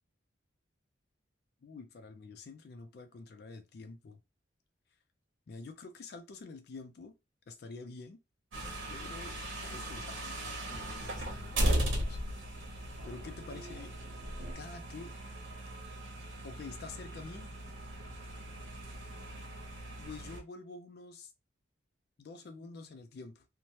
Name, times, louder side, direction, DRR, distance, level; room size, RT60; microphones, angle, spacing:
voice 1, 1.6-4.2 5.5-7.1 7.5-8.2 8.9-9.4 9.7-12.2 13.0-13.9 14.4-15.2 16.4-17.5 20.0-21.3 22.2-23.4, left 4 dB, 55° left, 0.3 m, -48 dB
sound 1, 8.5-20.4, right 1 dB, 85° right, 1.0 m, -37 dB
sound 2, 9.2-14.5, equal, 60° right, 1.0 m, -52 dB
3.0 x 2.1 x 2.7 m
head